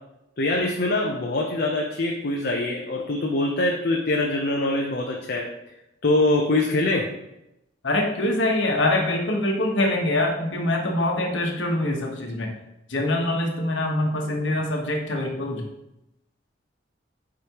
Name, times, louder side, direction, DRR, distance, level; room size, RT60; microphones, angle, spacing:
voice 1, 0.4-5.5 6.0-7.1, left 2 dB, 55° left, 0 dB, 0.7 m, -23 dB
voice 2, 7.8-12.5 12.9-15.6, left 1 dB, 85° left, 1 dB, 1.2 m, -24 dB
8.1 x 5.0 x 3.0 m, 0.89 s
head